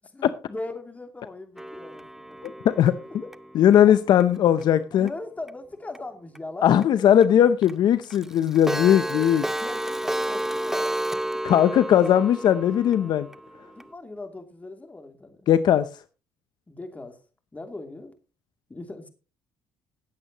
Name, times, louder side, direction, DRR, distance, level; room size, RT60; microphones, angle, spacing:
voice 1, 0.1-2.6 3.8-3.9 4.9-6.8 9.6-11.0 13.8-15.5 16.7-17.2 17.5-18.2 18.7-19.1, left 2 dB, 20° left, 2.7 m, -39 dB
Clock, 1.6-4.6 5.1-5.2 5.5-5.6 5.9-6.0 6.3-6.4 6.8-6.9 7.2-7.3 7.6-7.7 8.0-13.9, right 1 dB, 5° right, 0.5 m, -32 dB
voice 2, 2.4-2.9 3.5-5.1 6.6-9.4 11.4-13.3 15.5-15.9, left 10 dB, 65° left, 0.7 m, -19 dB
19.0 x 8.1 x 3.0 m
cardioid pair, 85°, 8 cm